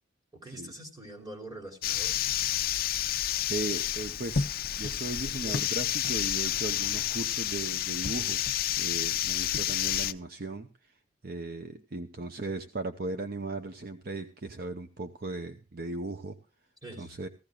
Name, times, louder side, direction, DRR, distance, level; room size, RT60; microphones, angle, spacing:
voice 1, 0.3-2.2 5.2-5.5 6.9-7.0 11.6-11.7 16.8-17.2, right 1 dB, 20° right, 2 dB, 3.2 m, -45 dB
sound 1, 1.8-10.1, left 10 dB, 50° left, 0.6 m, -30 dB
voice 2, 3.5-4.5 4.8-8.4 8.8-10.7 11.2-16.4 17.0-17.3, right 2 dB, 55° right, 7 dB, 0.8 m, -37 dB
15.5 x 15.5 x 2.4 m, 0.32 s
head